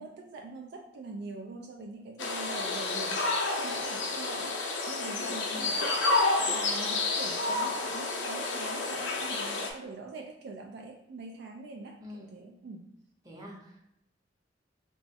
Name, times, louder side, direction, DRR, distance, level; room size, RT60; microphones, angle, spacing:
voice 1, 0.0-12.8, right 3 dB, 60° right, 2 dB, 0.3 m, -43 dB
sound 1, 2.2-9.7, left 3 dB, 70° left, 0.6 m, -30 dB
voice 2, 12.0-12.4 13.2-13.9, left 2 dB, 20° right, -3 dB, 0.8 m, -45 dB
2.9 x 2.3 x 4.1 m, 0.82 s
head